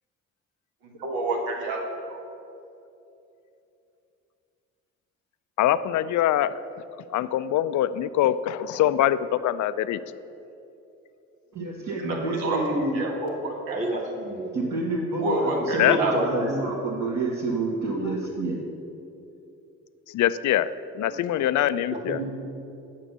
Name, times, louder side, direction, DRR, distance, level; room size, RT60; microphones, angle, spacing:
voice 1, 0.8-1.8 2.1-2.2 12.0-13.8 15.2-16.1 21.0-21.1, right 2 dB, 75° right, 0 dB, 1.6 m, -28 dB
voice 2, 5.6-6.8 7.1-10.0 15.8-16.0 20.1-22.2, left 12 dB, 55° left, 15 dB, 0.4 m, -24 dB
voice 3, 11.5-13.0 14.5-18.6, right 2 dB, 55° right, -5 dB, 1.7 m, -29 dB
voice 4, 13.7-14.5 15.8-16.7 21.9-22.3, right 1 dB, 20° right, -4 dB, 1.3 m, -30 dB
7.5 x 5.9 x 6.7 m, 2.8 s
hypercardioid pair, 45°, 36 cm